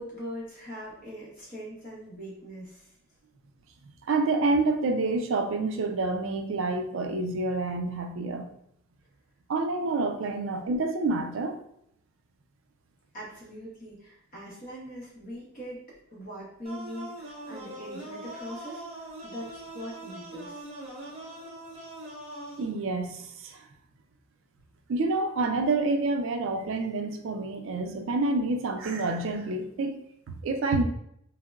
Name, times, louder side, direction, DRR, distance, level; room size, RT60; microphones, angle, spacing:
voice 1, 0.0-2.9 10.2-10.3 13.1-15.8 16.1-20.6, equal, 40° left, -5 dB, 0.9 m, -41 dB
voice 2, 4.1-8.4 9.5-11.6 22.6-23.6 24.9-30.8, right 3 dB, 65° right, 5 dB, 0.4 m, -28 dB
sound 1, 16.6-22.6, right 1 dB, 30° right, 0.7 m, -42 dB
3.6 x 2.0 x 2.2 m, 0.72 s
head